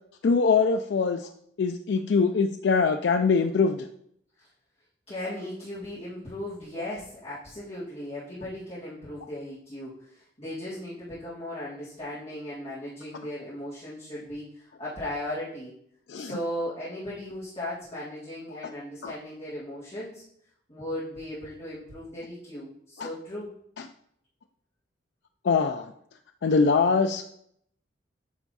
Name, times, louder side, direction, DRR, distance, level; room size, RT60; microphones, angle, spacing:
voice 1, 0.2-1.3 1.6-3.9 16.1-16.4 19.0-19.1 23.0-23.1 25.4-25.9 26.4-27.2, left 5 dB, 65° left, 6 dB, 0.4 m, -23 dB
voice 2, 5.1-15.7 16.1-20.2 20.7-23.5, left 1 dB, 35° left, -11 dB, 2.3 m, -37 dB
9.1 x 3.5 x 4.0 m, 0.69 s
head